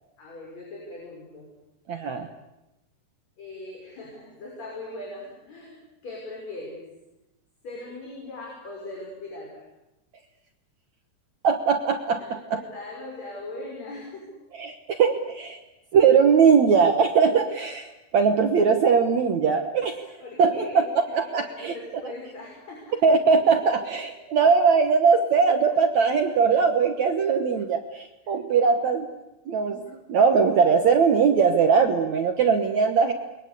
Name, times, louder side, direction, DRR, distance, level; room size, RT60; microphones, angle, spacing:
voice 1, 0.2-1.5 3.4-5.8 6.0-6.8 7.6-9.6 12.2-14.2 20.2-20.9 21.4-22.9, left 2 dB, 40° left, -2 dB, 7.0 m, -39 dB
voice 2, 1.9-2.3 11.4-12.6 14.5-15.6 15.9-20.1 20.4-21.8 23.0-29.1 29.5-33.1, right 5 dB, 60° right, 5 dB, 1.9 m, -20 dB
28.5 x 22.5 x 8.3 m, 0.94 s
omnidirectional pair, 4.9 m